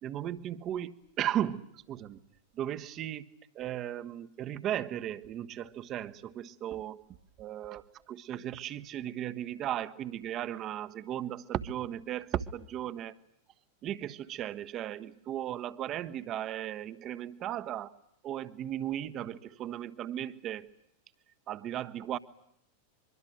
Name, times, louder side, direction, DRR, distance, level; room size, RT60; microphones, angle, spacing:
voice 1, 0.0-2.2 2.5-7.0 7.4-13.2 13.8-18.0 18.2-20.7 21.5-22.2, right 11 dB, 35° right, 13 dB, 1.4 m, -36 dB
25.0 x 23.5 x 9.2 m, 0.74 s
figure-of-eight pair, 90°, 0 cm